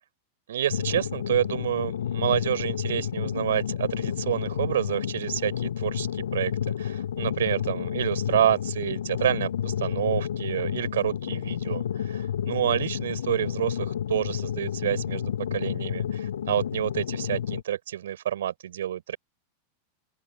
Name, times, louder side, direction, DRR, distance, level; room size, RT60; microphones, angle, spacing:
voice 1, 0.5-6.5 6.8-19.2, right 11 dB, 60° right, 7.4 m, -28 dB
sound 1, 0.7-17.6, left 9 dB, 65° left, 3.0 m, -30 dB
open air
figure-of-eight pair, 90°, 0 cm